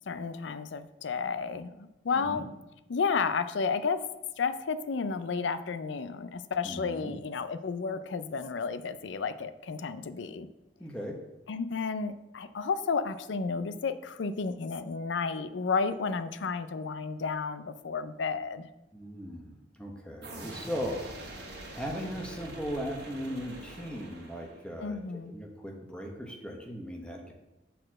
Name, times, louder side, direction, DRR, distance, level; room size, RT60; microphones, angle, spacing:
voice 1, 0.1-2.5 2.9-4.1 4.4-10.5 11.5-18.7 24.8-25.3, left 5 dB, 75° left, 12 dB, 0.5 m, -32 dB
voice 2, 2.1-2.5 6.6-7.2 10.8-11.2 18.9-27.3, equal, 5° left, 1 dB, 1.0 m, -38 dB
sound 1, 20.2-24.9, right 1 dB, 65° right, 1.4 m, -45 dB
6.7 x 4.3 x 6.2 m, 0.97 s
head